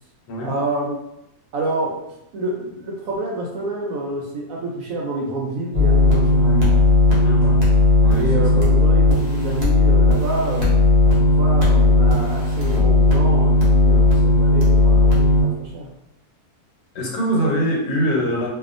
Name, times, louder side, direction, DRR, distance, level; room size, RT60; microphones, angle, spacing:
voice 1, 0.4-1.0 1.5-2.0 2.3-6.8 7.4-7.6 8.1-10.8 11.0-15.9, right 2 dB, 70° right, -2 dB, 0.8 m, -28 dB
sound 1, 5.7-15.4, left 2 dB, 85° right, 0.3 m, -16 dB
voice 2, 7.2-7.6 8.0-8.7 16.9-18.5, equal, 85° left, -2 dB, 1.3 m, -23 dB
2.7 x 2.3 x 2.5 m, 0.83 s
omnidirectional pair, 1.7 m